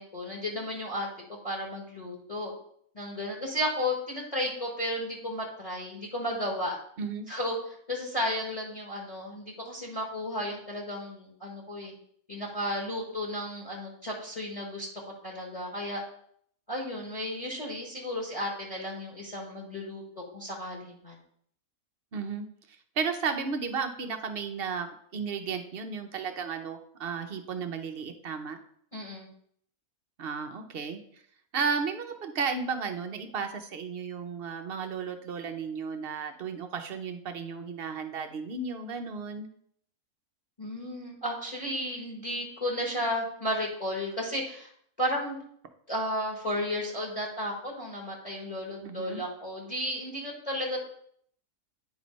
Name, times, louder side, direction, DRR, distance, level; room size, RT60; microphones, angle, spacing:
voice 1, 0.0-2.5 2.9-6.8 7.3-11.9 12.3-14.9 15.2-16.0 16.7-20.0 20.3-21.2 28.9-29.3 40.6-44.7 45.0-45.4 45.9-50.9, left 1 dB, 25° left, -2 dB, 1.3 m, -33 dB
voice 2, 22.1-22.5 23.0-24.9 25.1-28.6 30.2-31.0 31.5-39.5 48.8-49.2, right 5 dB, 50° right, 6 dB, 0.8 m, -33 dB
9.4 x 3.3 x 5.1 m, 0.65 s
omnidirectional pair, 1.6 m